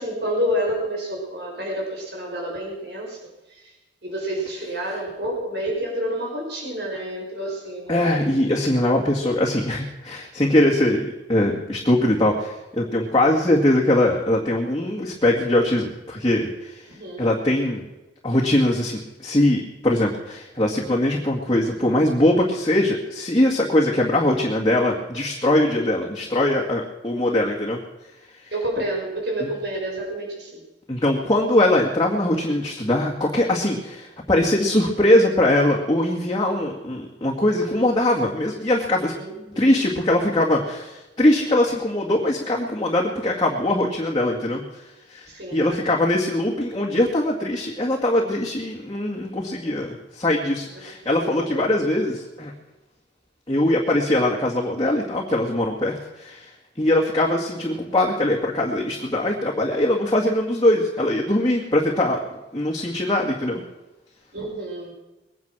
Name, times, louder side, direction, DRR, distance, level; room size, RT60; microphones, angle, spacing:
voice 1, 0.0-3.7 4.0-8.3 16.9-17.3 28.5-30.6 39.2-39.8 45.3-45.8 50.7-50.8 51.1-51.7 64.3-64.9, equal, 65° right, -1 dB, 5.3 m, -29 dB
voice 2, 7.9-16.8 17.2-17.8 18.2-27.8 30.9-39.1 39.6-44.8 45.1-52.5 53.5-56.5 56.8-62.2 62.5-63.6, left 1 dB, 25° left, -3 dB, 2.0 m, -21 dB
21.5 x 9.7 x 6.2 m, 1.0 s
head